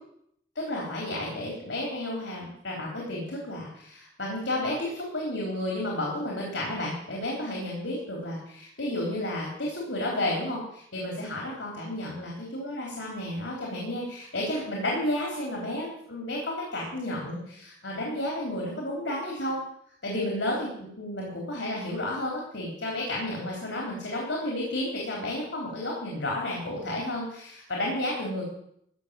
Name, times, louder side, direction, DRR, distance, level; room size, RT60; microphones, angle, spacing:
voice 1, 0.6-19.6 20.0-28.5, left 1 dB, 90° left, -2 dB, 3.8 m, -32 dB
15.0 x 6.4 x 7.6 m, 0.71 s
head